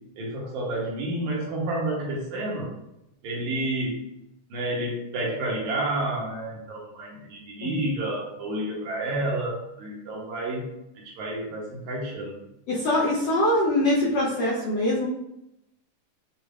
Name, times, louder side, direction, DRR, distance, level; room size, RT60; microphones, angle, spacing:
voice 1, 0.2-2.7 3.2-4.0 4.5-12.4, right 1 dB, 70° right, -3 dB, 2.1 m, -30 dB
voice 2, 12.7-15.1, left 1 dB, 75° left, -6 dB, 1.5 m, -23 dB
6.9 x 2.5 x 2.4 m, 0.85 s
omnidirectional pair, 3.7 m